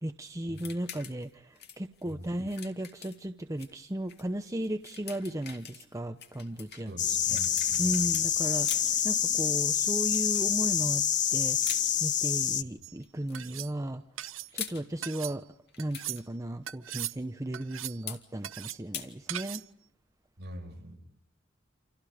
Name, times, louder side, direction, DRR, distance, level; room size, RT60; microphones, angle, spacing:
voice 1, 0.0-6.9 7.3-7.4 7.8-11.0 11.3-11.6 12.0-14.0 14.5-15.4 15.8-19.6, right 1 dB, 15° right, 7 dB, 0.9 m, -35 dB
sound 1, 0.5-1.3 1.6-3.7 4.1-4.2 4.6-8.3 8.6-9.0 10.1-10.5 11.6-11.9 13.0-13.5 14.3-14.8 15.7-16.2 18.1-18.2 18.9-19.1, left 8 dB, 55° left, 2.7 m, -43 dB
voice 2, 2.0-2.4 6.9-8.2 12.6-12.7 20.4-21.0, equal, 55° right, 2 dB, 6.8 m, -44 dB
sound 2, 7.0-12.6, left 9 dB, 40° left, 1.0 m, -27 dB
sound 3, 12.8-13.0 13.3-13.7 14.2-14.5 15.0-15.4 15.8-16.2 16.7-17.2 17.5-18.0 18.4-18.8 19.3-19.7, right 13 dB, 85° right, 0.9 m, -39 dB
29.5 x 28.0 x 5.1 m, 0.71 s
head